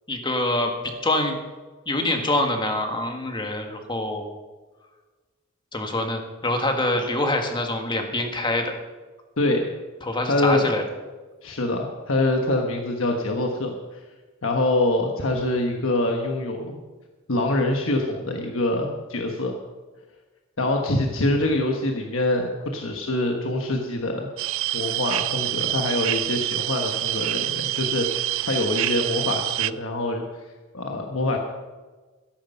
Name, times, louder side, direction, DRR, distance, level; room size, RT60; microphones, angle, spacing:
voice 1, 0.1-1.4 1.9-4.3 5.7-8.7 10.0-10.8, left 1 dB, 20° left, 4 dB, 1.6 m, -25 dB
voice 2, 9.4-9.7 10.3-10.7 11.4-14.0 14.4-16.8 17.3-19.5 20.6-24.3 24.7-30.2 30.7-31.4, left 2 dB, 65° left, 2 dB, 1.3 m, -25 dB
sound 1, 24.4-29.7, right 15 dB, 70° right, 0.4 m, -26 dB
13.5 x 11.0 x 5.5 m, 1.3 s
head